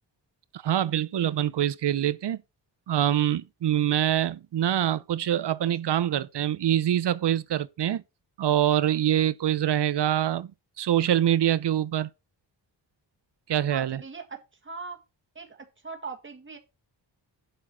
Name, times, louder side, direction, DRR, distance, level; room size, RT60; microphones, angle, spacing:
voice 1, 0.5-2.4 2.9-8.0 8.4-10.5 10.8-12.1 13.5-14.0, right 11 dB, 60° right, 0.7 m, -25 dB
voice 2, 13.7-15.0 15.4-16.6, right 4 dB, 25° right, 1.8 m, -40 dB
7.7 x 5.0 x 5.6 m
wide cardioid pair, 105°, 46 cm